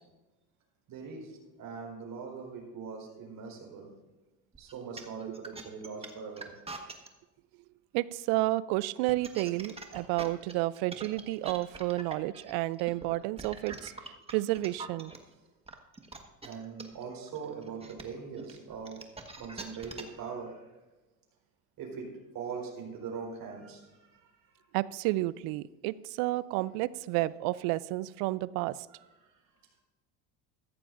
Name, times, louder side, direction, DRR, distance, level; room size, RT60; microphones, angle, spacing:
voice 1, 0.9-4.0 4.6-6.5 9.9-10.1 16.4-20.7 21.8-24.6 29.2-29.3, right 5 dB, 55° right, 0 dB, 4.2 m, -42 dB
sound 1, 4.5-7.1 8.9-15.2 15.7-20.2, right 3 dB, 15° right, 1.4 m, -43 dB
voice 2, 7.9-15.1 24.7-28.8, right 18 dB, 70° right, 20 dB, 0.5 m, -31 dB
14.5 x 13.5 x 2.6 m, 1.1 s
supercardioid pair, 95°, 40 cm